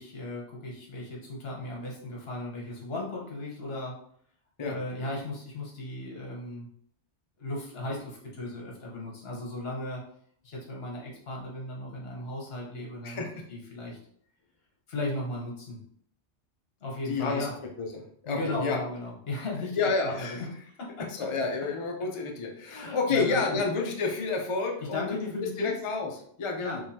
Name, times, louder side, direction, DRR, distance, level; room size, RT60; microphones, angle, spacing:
voice 1, 0.0-4.0 4.6-6.7 7.4-10.0 10.4-13.2 13.5-14.0 14.9-15.8 16.8-17.5 18.2-21.1 22.7-23.6 24.8-25.8 26.6-26.8, left 2 dB, 60° left, -2 dB, 1.3 m, -36 dB
voice 2, 13.0-13.5 17.1-17.5 17.8-18.8 19.8-20.4 21.1-25.0 25.6-26.1 26.4-26.8, left 4 dB, 40° left, 1 dB, 0.4 m, -30 dB
3.7 x 3.0 x 2.8 m, 0.63 s
omnidirectional pair, 1.2 m